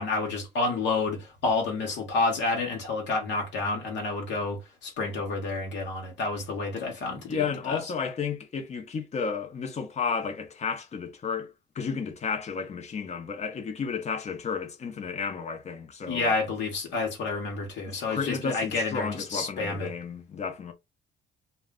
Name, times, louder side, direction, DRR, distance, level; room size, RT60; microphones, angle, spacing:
voice 1, 0.0-7.8 16.1-19.9, left 3 dB, 70° left, 0.9 m, -29 dB
voice 2, 7.3-16.3 17.9-20.7, left 6 dB, 35° left, 0.7 m, -32 dB
2.3 x 2.1 x 3.6 m
cardioid pair, 125°, 19 cm